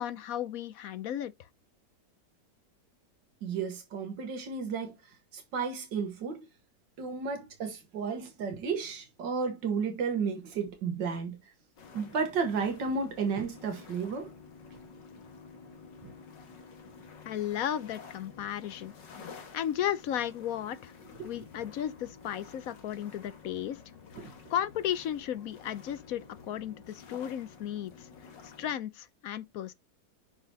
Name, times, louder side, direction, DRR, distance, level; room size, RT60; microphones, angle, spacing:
voice 1, 0.0-1.3 17.3-18.9 19.5-23.8 24.5-28.1 28.4-29.7, left 10 dB, 65° left, 1.0 m, -34 dB
voice 2, 3.4-6.5 7.0-11.5 11.9-14.3 21.2-21.3 24.2-24.3, right 5 dB, 85° right, 1.9 m, -33 dB
sound 1, 11.8-28.8, left 5 dB, 85° left, 2.3 m, -51 dB
7.6 x 6.0 x 2.8 m
omnidirectional pair, 1.9 m